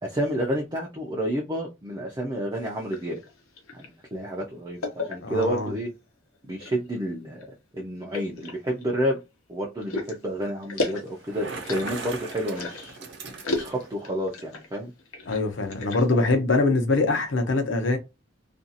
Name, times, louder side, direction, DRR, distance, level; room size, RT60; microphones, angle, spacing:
voice 1, 0.0-3.2 3.7-5.9 6.5-7.5 7.7-9.2 9.5-13.0 13.5-14.9, equal, 20° right, 0.4 m, -30 dB
sound 1, 2.5-3.9 4.8-5.7 6.3-6.9 7.3-7.5 8.1-9.2 9.8-13.0 13.4-14.7 15.0-16.2, left 2 dB, 90° left, 0.8 m, -34 dB
voice 2, 5.2-5.7 15.3-18.0, left 3 dB, 60° left, 0.7 m, -23 dB
Bicycle, 11.1-14.0, right 3 dB, 55° right, 0.7 m, -38 dB
2.5 x 2.3 x 2.7 m
head